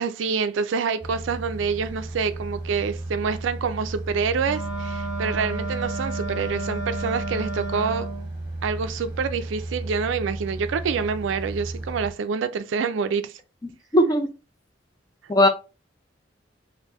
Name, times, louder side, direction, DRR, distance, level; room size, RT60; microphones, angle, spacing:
voice 1, 0.0-8.1 8.6-13.3, right 5 dB, 80° right, 0.3 m, -27 dB
sound 1, 1.0-12.1, right 2 dB, 25° right, 1.1 m, -34 dB
Wind instrument woodwind instrument, 4.4-8.3, right 2 dB, 75° left, 1.0 m, -32 dB
voice 2, 13.9-14.3 15.3-15.5, left 1 dB, 20° left, 0.4 m, -17 dB
3.4 x 2.6 x 2.9 m
head